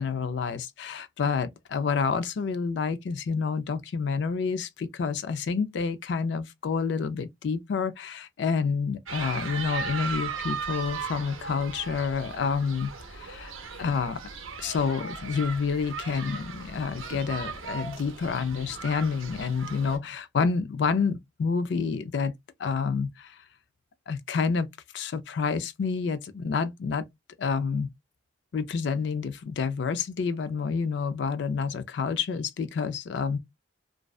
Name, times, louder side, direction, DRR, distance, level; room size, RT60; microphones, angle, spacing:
voice 1, 0.0-13.5 13.8-14.2 14.6-22.3 22.6-23.4 24.1-24.7 24.9-27.0 27.4-27.9 28.5-33.4, left 5 dB, 55° left, 0.3 m, -28 dB
sound 1, 9.1-20.0, right 5 dB, 75° right, 0.6 m, -37 dB
2.5 x 2.1 x 2.3 m
head